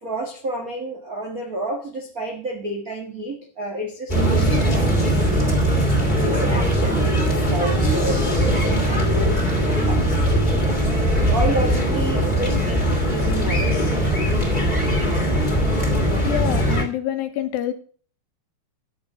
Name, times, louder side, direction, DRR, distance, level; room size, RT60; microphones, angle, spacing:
voice 1, 0.0-5.5 6.0-10.4 11.3-14.0, right 1 dB, 80° right, 1 dB, 0.7 m, -30 dB
sound 1, 4.1-16.8, equal, 15° left, 2.4 m, -20 dB
voice 2, 16.2-17.7, left 11 dB, 75° left, 9 dB, 2.6 m, -26 dB
10.5 x 6.9 x 6.1 m, 0.42 s
omnidirectional pair, 4.5 m